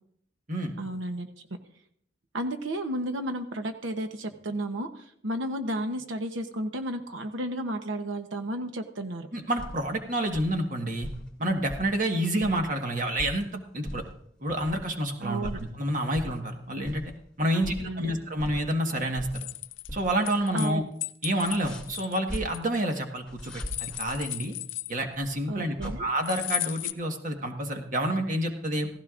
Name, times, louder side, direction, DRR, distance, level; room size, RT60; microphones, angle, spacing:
voice 1, 0.8-1.3 2.3-9.3 15.2-15.6 17.5-18.1 20.5-20.9 25.5-26.1, right 1 dB, 85° right, 6 dB, 0.9 m, -33 dB
voice 2, 9.3-11.1 11.4-14.0 14.4-15.5 15.8-17.0 17.4-19.5 19.9-20.8 21.2-24.5 24.9-28.9, right 1 dB, 40° right, 3 dB, 1.5 m, -28 dB
sound 1, 9.6-10.0 10.3-10.6 11.0-11.9 12.2-13.5 13.9-14.2 14.6-14.9 15.2-15.8 16.1-16.4 16.8-18.1 18.4-19.5 19.8-20.1 20.4-20.5 21.4-22.4 23.2-24.2 25.1-26.0, equal, 5° left, 2.6 m, -39 dB
sound 2, 19.3-20.7 21.0-23.0 23.4-25.3 26.2-26.9, left 18 dB, 80° left, 0.5 m, -35 dB
17.0 x 15.0 x 2.5 m, 0.68 s
head